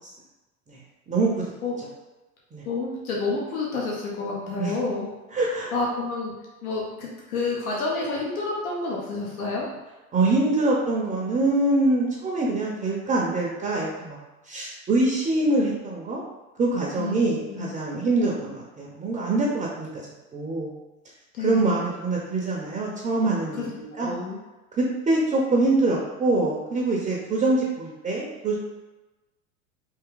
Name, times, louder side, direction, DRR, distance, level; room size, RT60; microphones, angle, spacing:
voice 1, 1.1-1.5 2.5-2.6 4.6-4.8 5.3-5.7 10.1-14.2 14.5-16.2 16.6-20.0 20.3-20.7 21.4-24.1 24.8-28.5, right 2 dB, 15° right, -3 dB, 0.5 m, -24 dB
voice 2, 2.6-5.1 5.7-6.3 6.6-9.7 17.0-17.2 17.5-17.7 21.3-21.8 23.6-23.7 24.0-24.4, left 3 dB, 80° left, -4 dB, 1.0 m, -29 dB
3.5 x 2.6 x 3.7 m, 1.1 s
hypercardioid pair, 100°, 42 cm